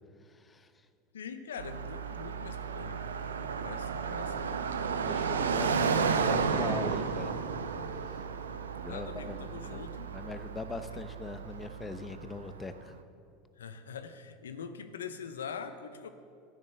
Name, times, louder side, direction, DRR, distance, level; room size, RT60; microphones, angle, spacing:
voice 1, 0.3-0.7 4.8-7.4 8.0-8.3 8.8-13.0, left 3 dB, 20° left, 11 dB, 0.9 m, -41 dB
voice 2, 1.1-4.5 8.8-10.1 10.9-11.0 13.6-16.1, left 6 dB, 85° left, 10 dB, 0.8 m, -43 dB
Car passing by, 1.6-12.7, right 6 dB, 90° right, 0.7 m, -33 dB
12.5 x 9.7 x 6.9 m, 2.5 s
hypercardioid pair, 90°, 0 cm